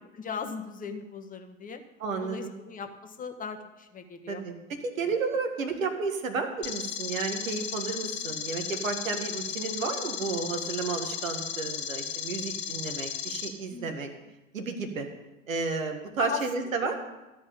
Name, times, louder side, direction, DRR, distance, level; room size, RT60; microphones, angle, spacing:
voice 1, 0.1-1.8 2.2-4.4 5.0-5.1 13.7-13.9 16.2-16.4, left 6 dB, 20° left, 7 dB, 1.2 m, -37 dB
voice 2, 2.0-2.5 4.3-14.1 14.5-15.1 15.5-17.0, right 4 dB, 75° right, 5 dB, 1.9 m, -32 dB
sound 1, 6.6-13.5, left 8 dB, 40° left, 1.6 m, -35 dB
12.5 x 5.5 x 8.5 m, 1.0 s
figure-of-eight pair, 85°, 41 cm